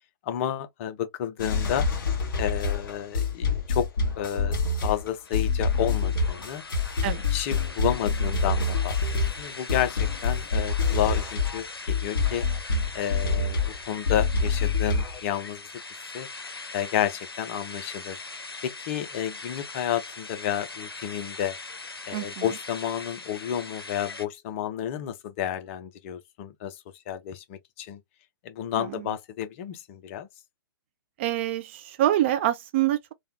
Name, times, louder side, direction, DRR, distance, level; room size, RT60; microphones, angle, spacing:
voice 1, 0.2-1.9 2.4-3.9 4.2-6.6 7.3-9.0 9.4-12.4 12.9-13.6 13.9-15.6 16.1-16.3 16.7-18.2 18.6-21.6 22.1-28.0 28.4-30.3, left 10 dB, 35° left, 0.6 m, -31 dB
sound 1, 1.4-11.6 11.9-15.2, left 4 dB, 60° left, 1.5 m, -26 dB
sound 2, 5.2-24.3, left 3 dB, 80° left, 0.6 m, -41 dB
voice 2, 22.1-22.5 28.8-29.1 31.2-33.1, right 13 dB, 30° right, 0.3 m, -26 dB
3.3 x 2.2 x 2.7 m
figure-of-eight pair, 120°, 12 cm